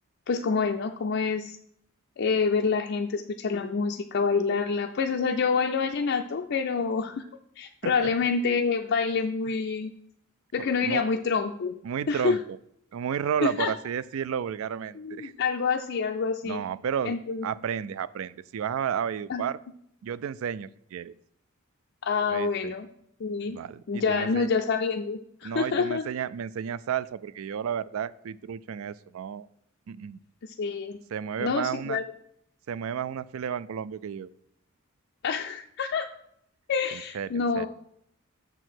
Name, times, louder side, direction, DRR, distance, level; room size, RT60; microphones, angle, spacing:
voice 1, 0.3-1.6 2.2-7.2 7.6-9.9 10.5-11.7 12.1-12.4 13.4-13.7 14.9-16.6 17.0-17.5 19.3-19.4 22.0-22.9 23.2-23.6 23.9-26.1 30.4-31.0 31.4-32.0 35.2-36.1 36.7-37.7, left 5 dB, 50° left, 4 dB, 0.4 m, -27 dB
voice 2, 10.6-11.0 11.8-12.6 12.9-15.3 16.4-17.2 17.4-19.6 20.0-21.1 22.3-22.7 23.5-24.5 25.4-29.5 29.9-30.2 31.1-32.0 32.7-34.3 36.9-37.7, right 8 dB, 70° right, 17 dB, 0.3 m, -32 dB
6.6 x 4.5 x 6.2 m, 0.70 s
head